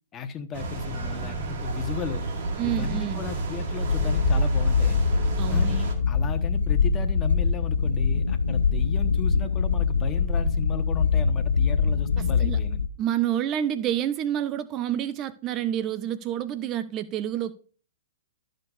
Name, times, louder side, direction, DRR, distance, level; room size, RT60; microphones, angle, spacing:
voice 1, 0.1-2.2 2.6-5.0 5.5-12.8, left 7 dB, 25° left, 1.2 m, -35 dB
sound 1, 0.5-5.9, right 3 dB, 55° right, 2.0 m, -29 dB
voice 2, 2.6-3.2 5.4-5.8 12.2-12.6 13.0-17.5, right 11 dB, 30° right, 0.5 m, -28 dB
sound 2, 3.8-12.9, left 5 dB, 80° left, 0.5 m, -23 dB
13.0 x 6.6 x 2.5 m
hypercardioid pair, 115°, 0 cm